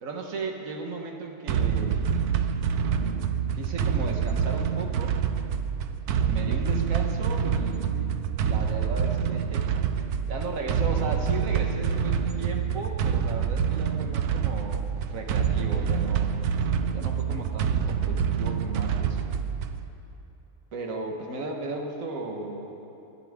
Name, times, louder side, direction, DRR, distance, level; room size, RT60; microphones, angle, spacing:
voice 1, 0.0-2.0 2.9-3.2 3.5-5.2 6.3-8.1 8.4-9.7 10.3-16.3 16.9-19.2 20.7-22.8, right 3 dB, 60° right, 2 dB, 1.7 m, -36 dB
sound 1, 1.5-19.9, right 7 dB, 85° right, 1.2 m, -26 dB
27.5 x 11.5 x 3.7 m, 2.9 s
omnidirectional pair, 1.6 m